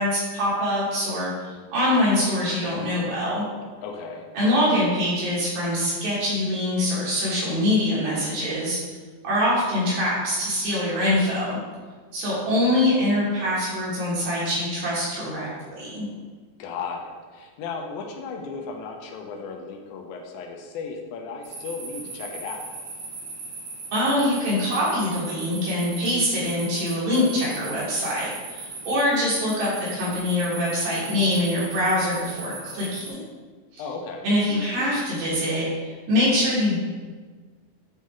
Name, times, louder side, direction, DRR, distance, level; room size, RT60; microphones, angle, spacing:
voice 1, 0.0-3.4 4.3-8.8 9.2-11.6 12.1-15.5 15.8-16.1 23.9-33.2 33.7-33.8 34.2-35.7 36.1-36.8, left 1 dB, 85° right, -8 dB, 3.7 m, -24 dB
voice 2, 3.8-4.3 16.6-22.6 33.8-34.3, left 5 dB, 85° left, 1 dB, 2.4 m, -35 dB
sound 1, 21.4-33.1, right 3 dB, 70° right, 2.4 m, -38 dB
8.4 x 3.2 x 3.6 m, 1.5 s
omnidirectional pair, 4.1 m